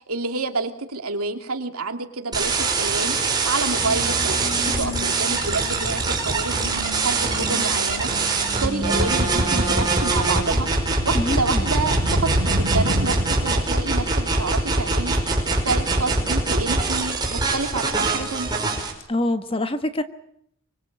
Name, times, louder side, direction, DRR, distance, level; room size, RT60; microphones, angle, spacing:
voice 1, 0.0-8.1 8.4-10.7 11.0-15.2 15.5-18.5, right 3 dB, 90° right, 6 dB, 2.8 m, -28 dB
sound 1, 2.3-18.9, right 3 dB, 20° right, 5.2 m, -23 dB
sound 2, 3.8-12.4, left 1 dB, 60° left, 2.1 m, -36 dB
Motorcycle, 3.8-13.5, equal, 75° right, 4.1 m, -32 dB
voice 2, 11.1-11.6 19.1-20.0, left 1 dB, 25° left, 9 dB, 1.5 m, -25 dB
25.0 x 22.5 x 8.8 m, 0.71 s
head